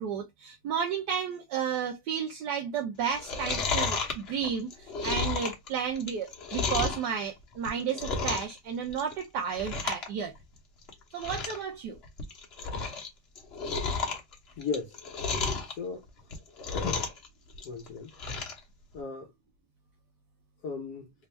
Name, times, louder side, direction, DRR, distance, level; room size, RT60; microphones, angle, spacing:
voice 1, 0.0-10.3 11.1-12.0, right 7 dB, 70° right, 1.3 m, -32 dB
Chewing mastication, 3.1-7.1 7.5-8.6 8.9-9.2 9.5-10.1 10.4-10.5 10.9-11.0 11.2-11.6 12.0-13.1 13.4-15.7 16.2-17.3 17.5-18.6 19.0-19.1, left 4 dB, 45° left, 0.8 m, -32 dB
voice 2, 14.6-15.0 15.7-16.1 16.7-17.0 17.6-18.1 18.9-19.3 20.6-21.1, left 5 dB, 65° left, 1.1 m, -35 dB
3.5 x 2.7 x 3.1 m
omnidirectional pair, 2.0 m